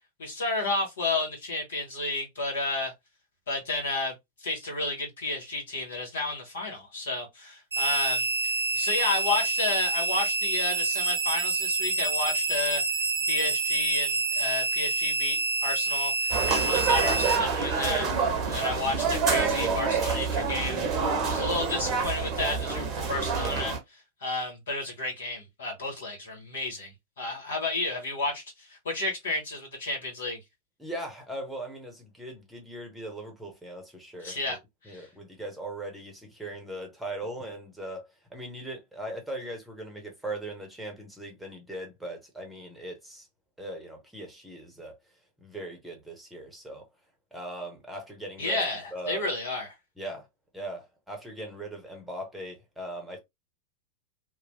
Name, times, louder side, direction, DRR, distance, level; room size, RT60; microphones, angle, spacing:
voice 1, 0.2-2.9 3.5-4.1 4.4-8.3 8.7-12.8 13.3-18.1 18.4-20.8 21.3-23.7 24.2-30.4 34.2-34.6 34.8-35.1 48.4-49.7, left 2 dB, 65° left, 1.5 m, -31 dB
sound 1, 7.7-17.4, right 3 dB, 70° right, 0.6 m, -27 dB
sound 2, 16.3-23.8, right 5 dB, 30° right, 0.8 m, -27 dB
voice 2, 30.8-34.6 34.8-43.3 43.6-45.0 45.4-46.9 47.3-49.3 50.0-50.3 50.5-53.2, right 1 dB, 5° right, 1.0 m, -39 dB
3.0 x 2.3 x 2.7 m
figure-of-eight pair, 90°, 0 cm